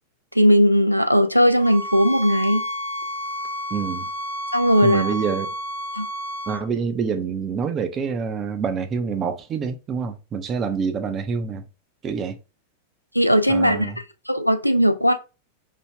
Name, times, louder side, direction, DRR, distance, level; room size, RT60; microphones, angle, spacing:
voice 1, 0.3-2.6 4.5-5.1 5.9-6.1 13.1-13.9 14.3-15.1, equal, 90° left, 0.4 m, -18 dB
sound 1, 1.6-6.6, equal, 70° right, 1.1 m, -30 dB
voice 2, 3.7-4.1 4.8-5.5 6.5-11.6 12.0-12.4 13.5-14.0, right 6 dB, 30° right, 0.5 m, -26 dB
3.3 x 2.2 x 3.2 m
figure-of-eight pair, 90°, 0 cm